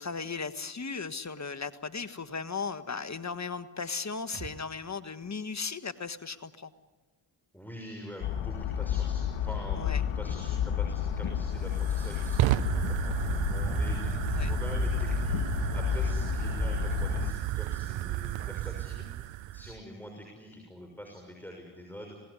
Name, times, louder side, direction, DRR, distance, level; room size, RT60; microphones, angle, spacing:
voice 1, 0.0-6.7 9.7-10.0 14.3-14.5, left 5 dB, 35° left, 12 dB, 1.6 m, -36 dB
sound 1, 4.3-7.9 8.1-8.2, right 4 dB, 55° right, 3.8 m, -53 dB
voice 2, 7.5-22.2, equal, 5° left, 2 dB, 6.4 m, -45 dB
sound 2, 8.2-17.3, left 9 dB, 80° left, 1.6 m, -31 dB
Fire, 10.8-19.8, right 14 dB, 80° right, 0.9 m, -33 dB
26.5 x 18.5 x 9.9 m, 1.3 s
supercardioid pair, 45°, 45 cm